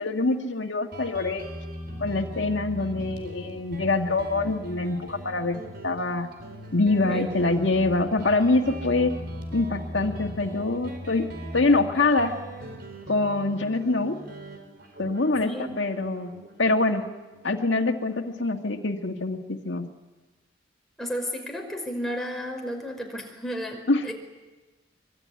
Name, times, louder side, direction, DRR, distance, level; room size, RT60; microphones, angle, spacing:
voice 1, 0.0-1.5 2.0-6.3 6.7-9.2 9.5-12.4 13.1-14.2 15.0-16.3 16.6-17.1 17.4-19.9 23.9-24.1, left 2 dB, 80° left, 3 dB, 1.8 m, -25 dB
Guitar, 0.9-18.1, equal, 55° right, 4.5 m, -40 dB
voice 2, 7.0-7.3 15.4-15.7 21.0-24.1, equal, ahead, 1 dB, 5.3 m, -33 dB
24.0 x 23.5 x 9.6 m, 1.2 s
head